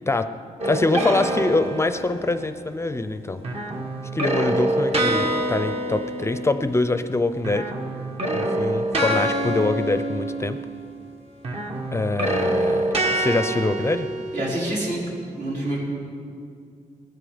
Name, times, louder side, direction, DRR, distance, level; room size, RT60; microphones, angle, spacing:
voice 1, 0.6-3.4 4.1-7.7 8.3-10.6 11.9-14.1, left 2 dB, 20° left, 10 dB, 0.5 m, -24 dB
sound 1, 0.6-2.5 3.4-7.1 7.4-11.0 11.4-14.9, right 1 dB, 45° right, 1.7 m, -26 dB
voice 2, 14.3-15.0 15.4-15.8, right 1 dB, 75° right, -5 dB, 5.0 m, -26 dB
19.0 x 13.0 x 5.1 m, 2.4 s
wide cardioid pair, 120°, 14 cm